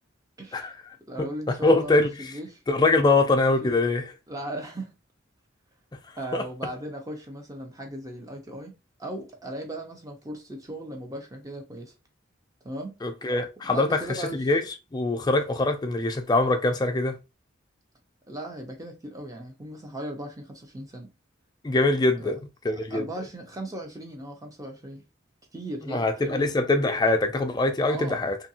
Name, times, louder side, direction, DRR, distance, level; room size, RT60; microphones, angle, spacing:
voice 1, 0.4-0.7 1.1-2.6 3.6-3.7 4.3-5.0 6.2-11.9 12.6-13.0 13.6-14.4 18.3-21.1 22.2-22.4 22.7-25.0 25.5-26.5 27.9-28.2, right 1 dB, 15° right, 0.6 m, -37 dB
voice 2, 1.6-2.3 2.7-4.0 6.3-6.4 13.0-14.0 14.3-14.6 14.9-17.1 21.6-22.3 22.6-23.0 25.9-28.4, left 2 dB, 20° left, 0.4 m, -23 dB
2.7 x 2.5 x 2.7 m
head